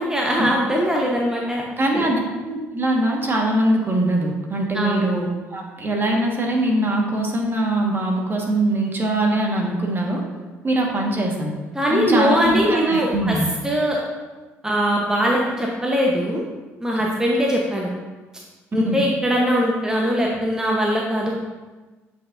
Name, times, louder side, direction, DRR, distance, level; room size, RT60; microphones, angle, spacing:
voice 1, 0.0-1.6 1.9-2.1 4.7-5.1 11.7-13.4 13.6-14.0 14.6-16.4 16.8-17.9 18.7-21.5, equal, 10° right, -2 dB, 1.0 m, -21 dB
voice 2, 1.8-2.2 2.4-10.2 10.6-11.5 11.9-13.4 18.8-19.0, right 1 dB, 35° right, 0 dB, 1.6 m, -22 dB
8.2 x 4.6 x 2.6 m, 1.3 s
hypercardioid pair, 55°, 6 cm